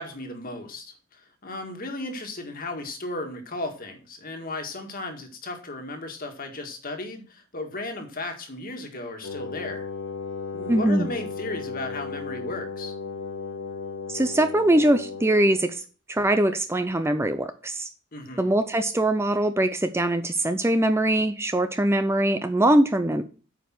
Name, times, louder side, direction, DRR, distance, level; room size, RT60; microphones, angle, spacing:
voice 1, 0.0-9.9 10.5-12.9 18.1-18.5, left 2 dB, 45° left, 5 dB, 1.9 m, -35 dB
Wind instrument woodwind instrument, 9.2-15.8, left 4 dB, 80° left, 0.9 m, -35 dB
voice 2, 10.7-11.1 14.1-15.8 16.1-17.9 18.4-23.2, right 1 dB, 15° right, 9 dB, 0.5 m, -22 dB
8.9 x 5.3 x 6.0 m, 0.36 s
head